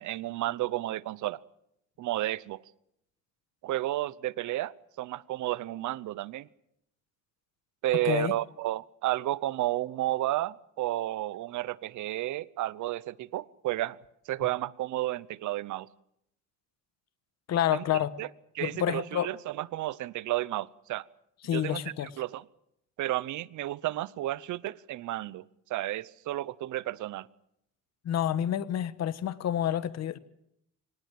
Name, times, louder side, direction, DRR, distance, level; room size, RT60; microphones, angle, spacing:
voice 1, 0.0-1.4 2.0-2.6 3.6-6.5 7.8-14.0 14.3-15.9 17.7-17.8 18.2-18.3 18.6-21.0 21.5-21.8 22.2-22.4 23.0-25.4 25.7-27.3, right 15 dB, 70° right, 0.8 m, -32 dB
voice 2, 17.5-18.1 18.6-19.3 21.4-22.1 28.0-30.2, left 10 dB, 55° left, 1.3 m, -28 dB
25.0 x 19.0 x 7.7 m
cardioid pair, 145°, 31 cm